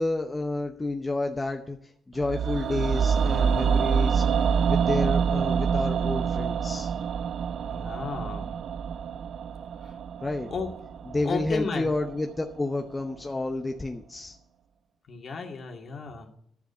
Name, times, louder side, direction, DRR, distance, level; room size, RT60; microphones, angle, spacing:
voice 1, 0.0-4.2 4.7-6.9 10.2-10.5 11.1-14.4, left 2 dB, 20° left, 4 dB, 0.8 m, -30 dB
sound 1, 2.2-12.3 12.6-12.7, right 7 dB, 65° right, 0.5 m, -26 dB
voice 2, 7.7-8.5 9.8-10.0 10.5-10.7 11.2-11.9 15.1-16.3, left 5 dB, 50° left, 2 dB, 2.2 m, -33 dB
11.0 x 6.9 x 6.9 m, 0.69 s
cardioid pair, 90°, 0 cm